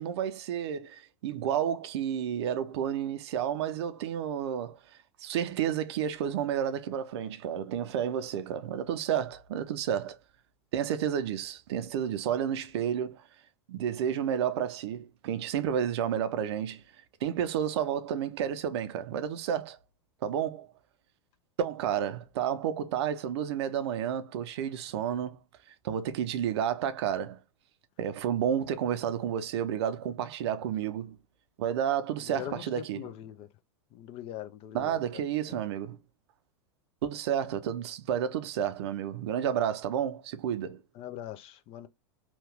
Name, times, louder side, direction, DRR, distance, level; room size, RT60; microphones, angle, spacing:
voice 1, 0.0-4.8 5.2-10.2 10.7-13.2 13.7-16.8 17.2-19.8 20.2-20.7 21.6-25.4 25.8-27.4 28.0-31.2 31.6-33.1 34.7-36.0 37.0-40.8, right 9 dB, 70° right, 0.6 m, -31 dB
voice 2, 32.3-33.5 33.9-35.0 35.5-35.6 41.0-41.9, left 11 dB, 45° left, 0.5 m, -42 dB
2.9 x 2.3 x 3.4 m
hypercardioid pair, 100°, 15 cm